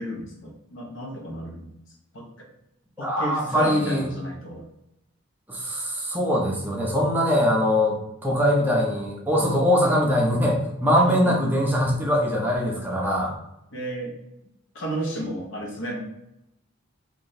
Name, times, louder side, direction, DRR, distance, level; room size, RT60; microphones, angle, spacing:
voice 1, 0.0-1.7 2.1-2.5 3.0-4.7 11.0-11.3 13.7-14.2 14.7-16.0, right 1 dB, 60° left, 0 dB, 0.9 m, -32 dB
voice 2, 3.0-4.1 5.5-13.3, equal, 10° right, -2 dB, 0.6 m, -22 dB
3.1 x 2.5 x 4.0 m, 0.85 s
head